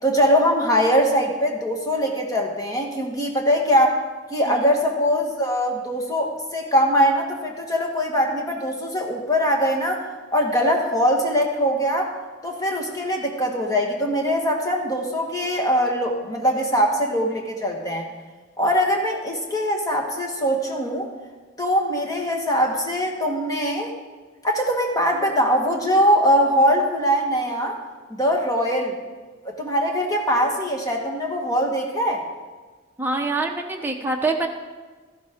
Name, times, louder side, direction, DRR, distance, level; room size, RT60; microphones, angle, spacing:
voice 1, 0.0-4.0 4.3-10.1 10.3-12.1 12.4-18.1 18.6-21.1 21.6-23.9 24.4-27.8 28.1-28.9 29.4-32.2, equal, 20° left, 1 dB, 1.5 m, -22 dB
voice 2, 33.0-34.5, right 3 dB, 10° right, 1 dB, 1.0 m, -25 dB
14.0 x 11.5 x 3.6 m, 1.4 s
head